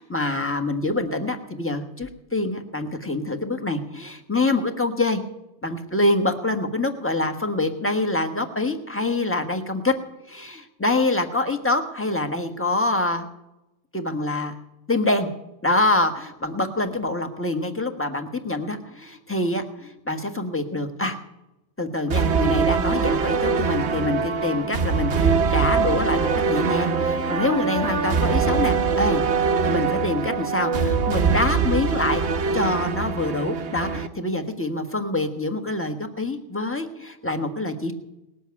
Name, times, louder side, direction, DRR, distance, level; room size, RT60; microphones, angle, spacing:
voice 1, 0.0-5.2 5.6-9.9 10.3-13.3 13.9-14.5 14.9-15.3 15.6-21.2 21.8-32.2 32.5-37.9, left 2 dB, 10° left, 5 dB, 1.3 m, -25 dB
sound 1, 22.1-34.1, right 5 dB, 55° right, 1.0 m, -23 dB
19.0 x 7.9 x 9.5 m, 0.94 s
omnidirectional pair, 1.6 m